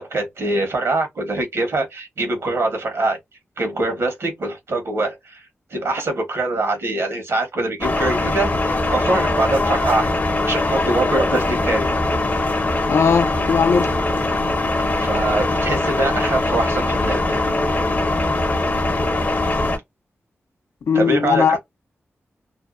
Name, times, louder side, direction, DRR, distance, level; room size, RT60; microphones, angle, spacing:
voice 1, 0.0-3.2 3.6-5.4 5.7-10.1 10.4-11.9 14.9-17.4 20.9-21.6, right 2 dB, 70° right, 1.2 m, -23 dB
sound 1, 7.8-19.8, left 2 dB, 40° left, 0.7 m, -21 dB
voice 2, 12.9-13.9 20.9-21.6, left 6 dB, 80° left, 0.5 m, -18 dB
2.7 x 2.1 x 2.5 m
cardioid pair, 65°, 5 cm